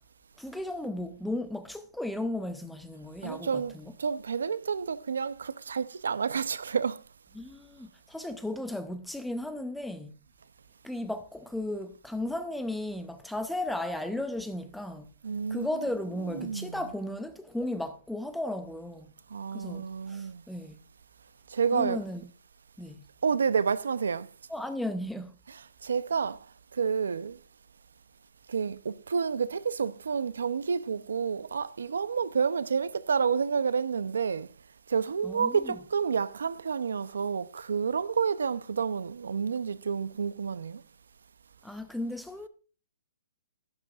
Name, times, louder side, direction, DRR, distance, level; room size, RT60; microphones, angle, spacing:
voice 1, 0.4-4.0 7.3-10.1 10.8-15.1 15.5-19.1 19.5-20.8 21.7-22.3 22.8-22.9 24.5-25.3 35.2-35.9 41.6-42.5, left 1 dB, ahead, 0.5 m, -35 dB
voice 2, 3.2-7.0 15.2-16.9 19.3-20.4 21.5-22.0 23.2-24.3 25.5-26.4 26.7-27.4 28.5-34.5 34.9-40.8, right 6 dB, 80° right, 0.6 m, -30 dB
11.0 x 10.5 x 2.4 m
hypercardioid pair, 165°, 0 cm